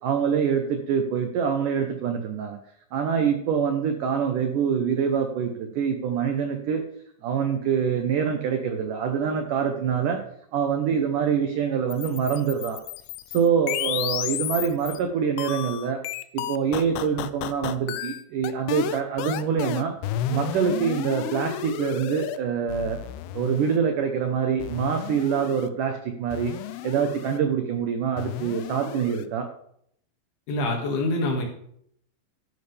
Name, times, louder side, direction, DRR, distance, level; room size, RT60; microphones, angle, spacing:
voice 1, 0.0-2.6 2.9-6.8 7.2-10.2 10.5-12.8 13.3-16.0 16.3-19.9 20.3-23.0 23.3-26.5 26.8-29.5, right 7 dB, 80° right, 4 dB, 1.8 m, -25 dB
sound 1, 11.9-15.0 15.4-22.4 22.7-23.8 24.6-25.7 26.3-27.4 28.2-29.3, left 13 dB, 80° left, 2.3 m, -32 dB
voice 2, 30.5-31.4, left 2 dB, 60° left, 1 dB, 3.8 m, -25 dB
13.5 x 11.0 x 3.4 m, 0.69 s
omnidirectional pair, 5.2 m